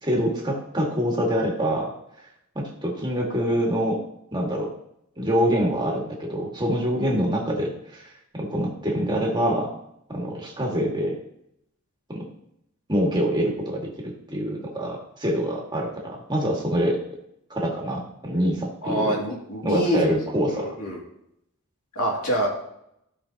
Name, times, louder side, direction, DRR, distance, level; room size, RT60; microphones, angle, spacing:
voice 1, 0.0-1.9 2.6-4.0 4.3-4.7 5.2-8.0 8.3-9.7 10.1-11.2 12.1-12.3 12.9-13.9 14.3-17.0 17.5-19.2 19.6-20.7, equal, 20° right, -2 dB, 1.9 m, -25 dB
voice 2, 18.8-20.1 20.5-21.0 22.0-22.5, equal, 80° left, -2 dB, 2.6 m, -25 dB
15.5 x 5.2 x 2.9 m, 0.77 s
head